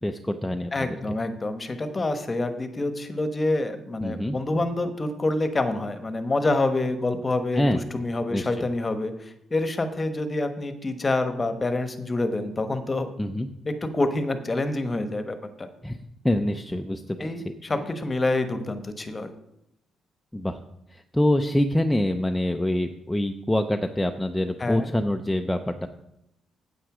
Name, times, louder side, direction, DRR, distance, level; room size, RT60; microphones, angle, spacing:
voice 1, 0.0-1.2 4.0-4.4 7.5-7.8 8.3-8.5 13.2-13.5 15.8-16.0 16.2-17.3 20.3-20.6 20.9-25.9, left 1 dB, 5° left, 5 dB, 0.6 m, -25 dB
voice 2, 0.7-13.1 13.6-15.7 17.2-19.3 24.6-24.9, left 2 dB, 25° left, 9 dB, 1.1 m, -27 dB
9.1 x 8.0 x 4.9 m, 0.83 s
cardioid pair, 90°, 0 cm